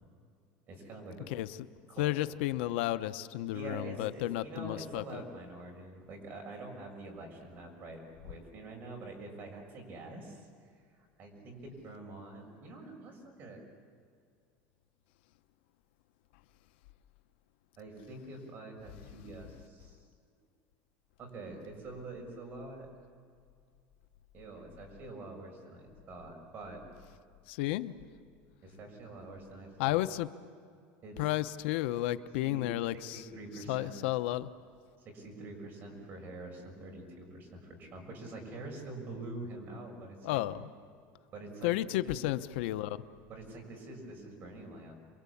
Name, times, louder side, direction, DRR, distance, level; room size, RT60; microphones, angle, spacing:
voice 1, 0.7-1.3 1.9-2.1 3.5-10.5 11.2-13.6 17.8-20.4 21.2-22.9 24.3-26.8 28.6-30.0 31.0-31.3 32.4-34.0 35.1-40.4 41.3-42.2 43.3-44.9, right 2 dB, 35° right, 1 dB, 6.8 m, -46 dB
voice 2, 2.0-5.2 27.5-27.9 29.8-30.3 31.2-33.2 33.7-34.5 40.2-40.7 41.6-43.0, left 15 dB, 80° left, 13 dB, 0.9 m, -32 dB
28.0 x 23.5 x 8.6 m, 2.3 s
cardioid pair, 150°, 6 cm